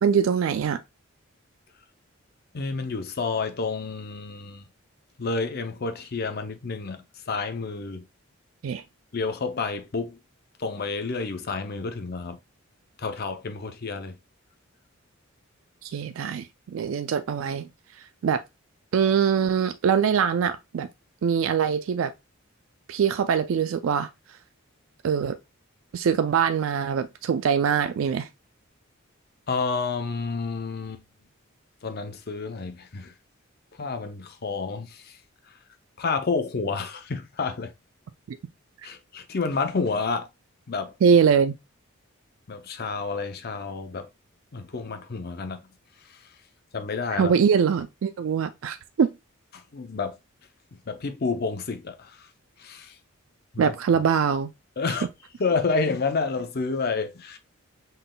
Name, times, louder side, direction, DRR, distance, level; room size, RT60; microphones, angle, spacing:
voice 1, 0.0-0.8 8.6-8.8 15.8-17.7 18.0-18.4 18.9-20.9 21.2-22.1 22.9-24.1 25.0-25.4 25.9-28.3 38.3-38.4 41.0-41.6 47.2-49.1 53.6-54.5, right 7 dB, 70° right, 0.3 m, -23 dB
voice 2, 2.5-4.6 5.2-8.1 9.1-10.2 10.6-12.4 13.0-14.2 29.5-31.0 31.8-33.1 33.8-35.2 35.5-35.6 36.0-37.7 38.8-40.3 40.7-41.0 42.5-44.1 44.5-45.7 46.0-46.3 46.7-47.3 49.5-50.2 50.7-52.3 52.6-53.0 53.5-53.7 54.8-55.1 55.4-57.4, left 4 dB, 50° left, 0.6 m, -30 dB
5.4 x 3.8 x 2.2 m
head